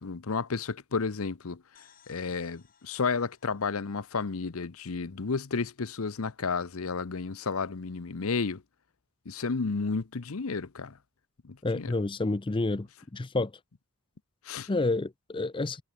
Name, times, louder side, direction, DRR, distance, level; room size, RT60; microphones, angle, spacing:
voice 1, 0.0-1.6 2.1-8.6 9.3-11.0 11.4-11.9 14.4-14.7, left 4 dB, 80° left, 0.8 m, -32 dB
sound 1, 1.7-5.4, left 8 dB, 40° left, 5.6 m, -64 dB
voice 2, 11.6-12.9 13.1-13.5 14.7-15.8, left 2 dB, 25° left, 0.5 m, -29 dB
head